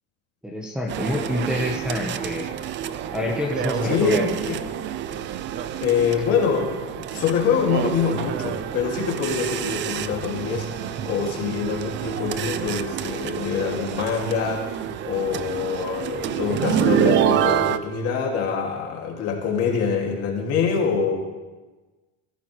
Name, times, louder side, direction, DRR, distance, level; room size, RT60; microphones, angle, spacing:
voice 1, 0.4-2.5 3.1-4.4, left 1 dB, 5° right, -2 dB, 1.2 m, -27 dB
sound 1, 0.9-17.8, right 9 dB, 35° right, 0.5 m, -27 dB
voice 2, 3.8-4.2 4.5-4.6 5.8-21.1, left 6 dB, 45° left, 0 dB, 2.5 m, -25 dB
16.5 x 13.0 x 3.3 m, 1.3 s
cardioid pair, 145°, 32 cm